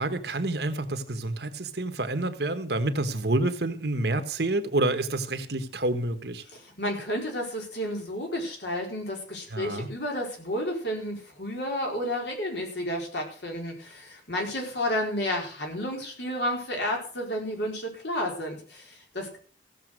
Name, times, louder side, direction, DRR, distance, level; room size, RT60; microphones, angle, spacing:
voice 1, 0.0-6.4 9.5-9.9, right 2 dB, 65° right, 1.4 m, -28 dB
voice 2, 6.5-19.4, left 1 dB, 70° left, 4.7 m, -31 dB
16.0 x 7.3 x 6.2 m
head